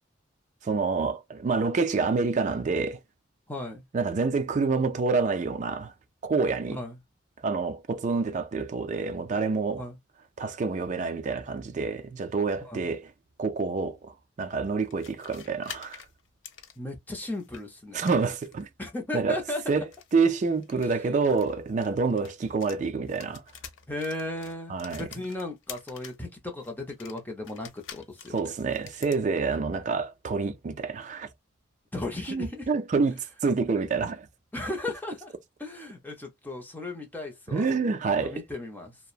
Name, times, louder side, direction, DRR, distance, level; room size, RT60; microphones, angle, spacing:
voice 1, 0.6-3.0 3.9-5.9 6.2-6.8 7.4-9.9 10.4-13.1 13.4-16.0 17.9-18.7 19.1-19.4 19.7-19.8 20.1-23.4 24.7-25.0 28.3-31.3 32.3-34.3 37.5-38.4, right 4 dB, 40° right, 0.3 m, -27 dB
voice 2, 3.5-3.9 6.7-7.0 9.7-10.0 12.6-12.9 16.8-18.0 18.8-19.9 20.8-21.0 23.9-28.5 31.9-32.7 34.5-35.3 35.6-37.7 38.2-39.0, left 2 dB, 10° left, 0.6 m, -36 dB
sound 1, 14.8-17.6 18.0-18.7 19.8-22.8 23.1-26.3 26.6-29.2, left 8 dB, 85° left, 0.5 m, -47 dB
2.8 x 2.0 x 2.3 m
head